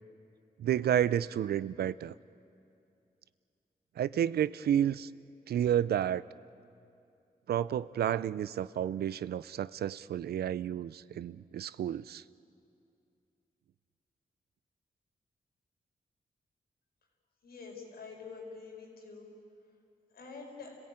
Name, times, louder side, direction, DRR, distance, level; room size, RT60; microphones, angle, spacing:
voice 1, 0.6-2.1 4.0-5.1 5.5-6.2 7.5-12.2, right 10 dB, 90° right, 18 dB, 0.5 m, -30 dB
voice 2, 17.4-19.3 20.1-20.7, left 4 dB, 85° left, 1 dB, 4.9 m, -46 dB
30.0 x 16.5 x 8.9 m, 2.5 s
cardioid pair, 70°, 16 cm